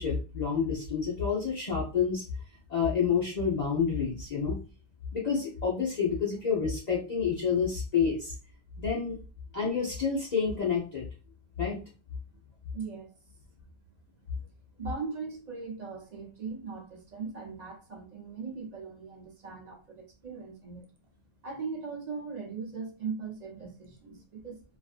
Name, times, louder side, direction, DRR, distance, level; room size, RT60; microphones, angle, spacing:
voice 1, 0.0-2.2 2.7-4.6 5.1-8.3 8.8-9.2 9.5-11.1 11.6-11.8, left 6 dB, 45° left, 0.7 m, -28 dB
voice 2, 12.7-13.3 14.4-14.5 14.8-20.9 21.4-24.6, right 5 dB, 50° right, 0.6 m, -39 dB
2.4 x 2.4 x 2.4 m
omnidirectional pair, 1.0 m